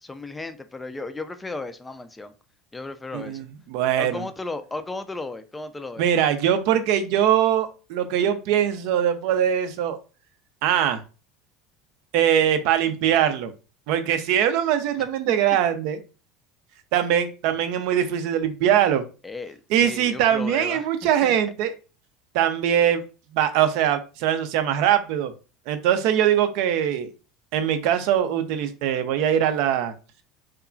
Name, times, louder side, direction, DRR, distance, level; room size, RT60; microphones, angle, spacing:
voice 1, 0.0-2.3 2.7-3.4 4.0-6.0 15.0-15.1 19.2-20.9 21.2-21.3, left 3 dB, 15° left, 0.4 m, -35 dB
voice 2, 3.1-4.2 6.0-10.0 10.6-11.0 12.1-13.5 13.9-16.0 16.9-19.0 19.7-21.7 22.3-23.0 23.3-25.3 25.7-27.1 27.5-29.9, right 10 dB, 65° right, 0.4 m, -22 dB
2.8 x 2.3 x 2.4 m
hypercardioid pair, 85°, 0 cm